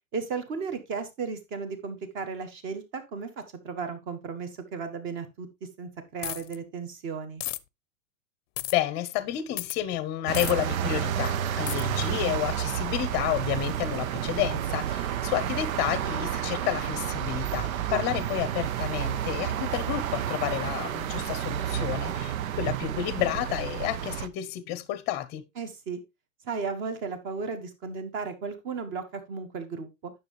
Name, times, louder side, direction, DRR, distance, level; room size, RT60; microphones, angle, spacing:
voice 1, 0.1-3.3 3.6-5.5 5.8-7.4 17.9-18.1 25.6-26.0 26.4-30.1, right 5 dB, 30° right, 1.5 m, -35 dB
sound 1, 6.2-6.6 7.4-7.6 8.6-8.7 9.6-9.8 10.3-10.5 11.7-11.8, left 16 dB, 60° left, 0.6 m, -33 dB
voice 2, 8.7-25.4, left 13 dB, 25° left, 0.8 m, -30 dB
sound 2, 10.3-24.3, right 10 dB, 75° right, 0.8 m, -30 dB
9.5 x 6.7 x 3.1 m
supercardioid pair, 160°, 41 cm